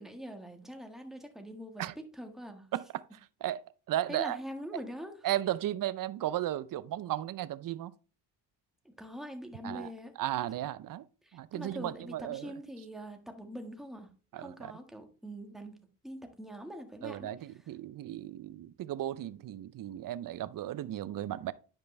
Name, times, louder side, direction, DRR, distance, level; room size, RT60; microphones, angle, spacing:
voice 1, 0.0-2.7 4.1-5.1 8.8-10.1 11.2-14.1 14.4-15.8 16.0-17.3, equal, ahead, 1.6 m, -43 dB
voice 2, 2.7-3.0 3.4-3.6 3.9-4.4 5.2-7.9 9.6-9.9 10.2-11.0 11.3-12.5 14.3-14.7 17.0-21.5, right 13 dB, 50° right, 0.6 m, -35 dB
10.5 x 5.2 x 3.3 m
supercardioid pair, 75°, 45 cm